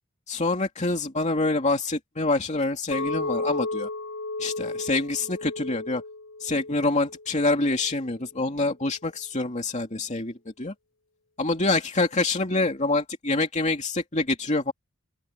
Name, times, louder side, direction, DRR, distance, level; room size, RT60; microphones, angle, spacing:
voice 1, 0.3-3.9 4.4-6.0 6.4-10.7 11.4-14.7, left 2 dB, 35° left, 2.6 m, -26 dB
Chink clink, 2.9-8.1, left 3 dB, 80° left, 6.7 m, -34 dB
open air
head